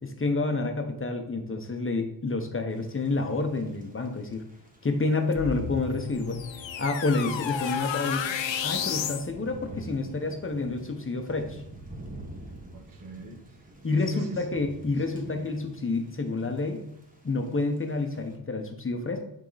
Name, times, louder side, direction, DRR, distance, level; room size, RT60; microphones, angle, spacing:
voice 1, 0.0-4.4 4.8-6.4 6.8-8.2 8.6-11.6 13.8-16.8 17.2-19.2, left 3 dB, 25° left, 4 dB, 1.0 m, -29 dB
Thunder / Rain, 2.7-18.4, right 2 dB, 15° right, 1.3 m, -48 dB
sound 1, 5.3-9.3, left 8 dB, 70° left, 0.7 m, -32 dB
voice 2, 12.7-14.6 14.9-15.5, right 3 dB, 45° right, 1 dB, 1.3 m, -44 dB
9.4 x 3.7 x 4.1 m, 0.77 s
wide cardioid pair, 115°, 47 cm